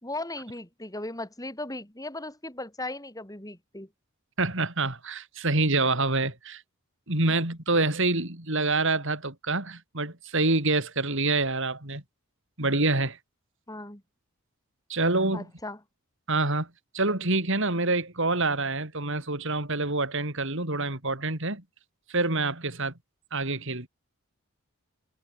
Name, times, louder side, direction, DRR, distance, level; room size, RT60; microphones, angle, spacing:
voice 1, 0.0-3.9 7.3-7.4 13.7-14.0 15.3-15.8, left 2 dB, 15° left, 4.0 m, -37 dB
voice 2, 4.4-6.6 7.1-12.0 12.6-13.2 14.9-15.5 16.3-16.7 16.9-21.6 22.1-22.9 23.3-23.9, right 2 dB, 55° right, 4.2 m, -26 dB
head